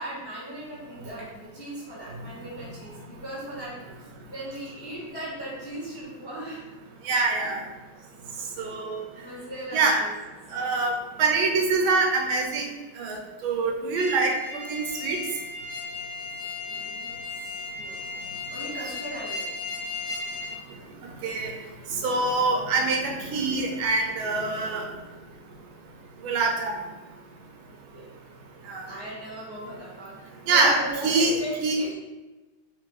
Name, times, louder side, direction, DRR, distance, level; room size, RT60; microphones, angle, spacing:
voice 1, 0.0-6.7 9.1-10.1 16.7-17.1 17.7-17.9 18.5-19.4 27.6-28.1 28.9-30.2 30.4-31.9, right 1 dB, 15° left, -9 dB, 0.9 m, -37 dB
voice 2, 7.0-7.6 8.6-9.0 9.7-10.0 10.5-12.7 13.0-14.3 14.7-15.2 21.2-21.5 21.9-24.9 26.2-26.8 28.7-28.8 30.5-30.8 31.0-31.7, right 3 dB, 80° right, 1 dB, 1.4 m, -24 dB
sound 1, 14.0-20.6, left 3 dB, 60° left, 1.4 m, -35 dB
3.7 x 2.5 x 4.6 m, 1.1 s
omnidirectional pair, 2.3 m